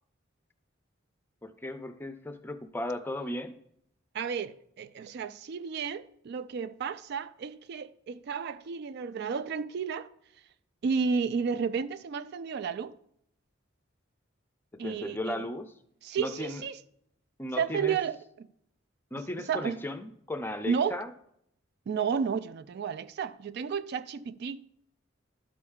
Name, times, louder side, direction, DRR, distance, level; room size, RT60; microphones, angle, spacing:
voice 1, 1.4-3.6 14.7-15.7 16.2-16.6 17.4-18.0 19.1-21.1, left 1 dB, 10° left, 0.5 m, -36 dB
voice 2, 4.1-10.1 10.8-12.9 14.8-15.4 16.0-16.8 17.6-18.5 19.5-19.8 20.7-21.0 21.9-24.7, right 6 dB, 55° right, 0.3 m, -32 dB
12.0 x 4.3 x 3.6 m
head